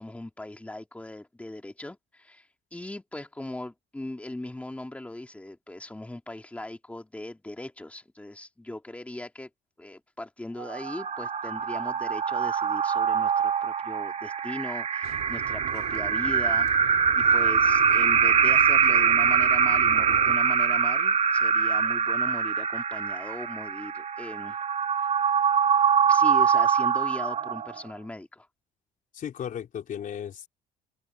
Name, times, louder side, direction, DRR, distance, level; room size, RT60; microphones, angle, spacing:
voice 1, 0.0-9.5 9.8-24.6 26.1-28.5, left 1 dB, 10° left, 2.5 m, -39 dB
sound 1, 10.6-28.0, right 7 dB, 40° right, 2.3 m, -23 dB
sound 2, 15.0-20.4, right 13 dB, 70° right, 4.0 m, -41 dB
voice 2, 29.1-30.5, left 9 dB, 50° left, 3.8 m, -35 dB
open air
cardioid pair, 110°, 17 cm